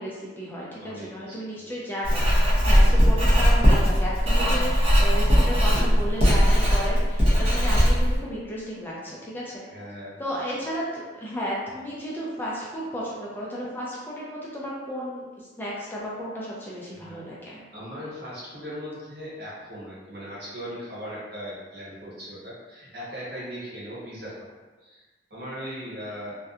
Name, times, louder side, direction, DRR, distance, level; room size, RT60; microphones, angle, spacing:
voice 1, 0.0-2.3 2.6-9.6 10.2-17.6, equal, 10° left, -6 dB, 0.4 m, -33 dB
voice 2, 0.8-1.7 2.7-3.1 9.6-10.2 16.9-17.2 17.7-24.5 24.8-25.0 25.3-26.4, equal, 65° right, -8 dB, 1.0 m, -39 dB
Writing, 2.0-8.2, equal, 35° right, 0.7 m, -19 dB
2.7 x 2.1 x 2.4 m, 1.3 s
head